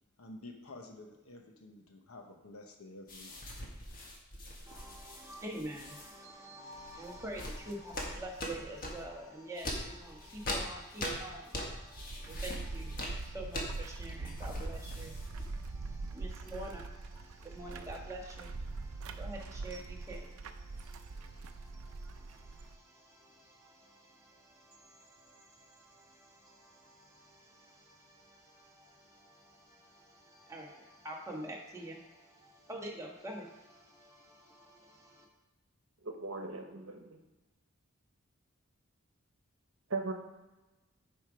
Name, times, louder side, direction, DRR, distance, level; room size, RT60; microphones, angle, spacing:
voice 1, 0.2-3.5, left 2 dB, 85° left, 3 dB, 1.0 m, -50 dB
sound 1, 3.1-6.1 6.7-9.1 9.6-15.7, left 1 dB, 40° left, 1.5 m, -41 dB
voice 2, 4.7-35.3, right 1 dB, 15° right, -2 dB, 1.4 m, -47 dB
sound 2, 12.0-22.8, right 3 dB, 85° right, 0.5 m, -43 dB
voice 3, 36.0-37.2 39.9-40.1, right 3 dB, 65° right, 4 dB, 1.1 m, -38 dB
7.5 x 5.1 x 5.0 m, 1.1 s
head